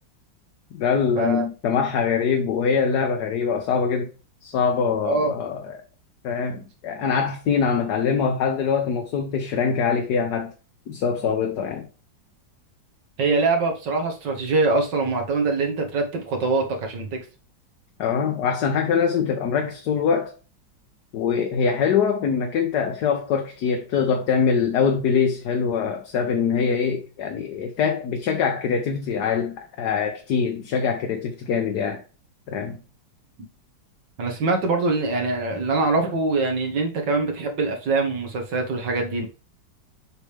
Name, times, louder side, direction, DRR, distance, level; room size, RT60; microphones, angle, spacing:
voice 1, 0.7-4.1 4.4-5.8 6.2-10.5 10.9-11.9 18.0-20.3 21.1-32.0 32.5-32.8, left 6 dB, 65° left, 1.4 m, -23 dB
voice 2, 13.2-17.2 34.2-39.3, right 3 dB, 70° right, 2.2 m, -23 dB
7.5 x 5.0 x 3.4 m
omnidirectional pair, 2.0 m